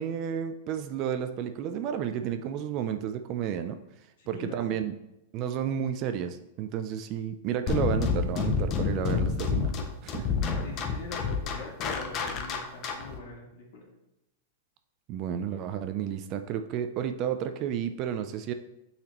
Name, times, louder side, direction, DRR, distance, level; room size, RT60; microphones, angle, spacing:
voice 1, 0.0-3.8 4.3-4.9 5.3-9.8 10.0-10.4 15.1-18.5, right 9 dB, 30° right, 9 dB, 0.3 m, -31 dB
voice 2, 4.2-4.6 10.6-13.9, left 3 dB, 60° left, -2 dB, 2.2 m, -43 dB
sound 1, 7.7-13.2, left 5 dB, 25° left, 0.5 m, -28 dB
8.6 x 4.1 x 2.9 m, 0.89 s
supercardioid pair, 170°, 0 cm